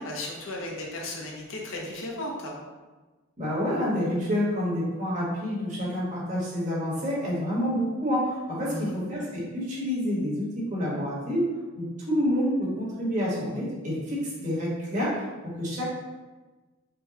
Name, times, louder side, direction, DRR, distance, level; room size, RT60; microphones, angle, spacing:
voice 1, 0.0-2.6 8.7-9.0, left 1 dB, 90° left, -1 dB, 0.9 m, -35 dB
voice 2, 3.4-15.8, equal, 40° right, -7 dB, 1.3 m, -28 dB
5.3 x 2.2 x 2.9 m, 1.2 s
head